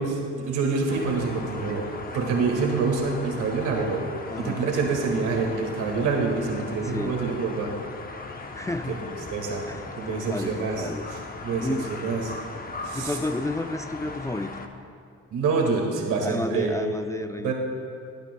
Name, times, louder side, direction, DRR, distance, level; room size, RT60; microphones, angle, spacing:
voice 1, 0.0-1.9 2.1-4.0 4.4-7.7 8.9-9.0 9.3-9.7 10.0-12.3 12.8-13.2 15.3-16.9 17.4-17.5, right 4 dB, 85° right, 0 dB, 1.9 m, -26 dB
sound 1, 0.9-14.7, left 3 dB, 30° left, 0.8 m, -38 dB
voice 2, 4.3-4.7 6.8-7.2 8.3-9.2 9.7-11.1 11.6-12.0 12.9-14.6 16.2-17.5, left 2 dB, 10° left, 7 dB, 0.3 m, -32 dB
18.0 x 9.0 x 2.2 m, 2.3 s
cardioid pair, 90°, 30 cm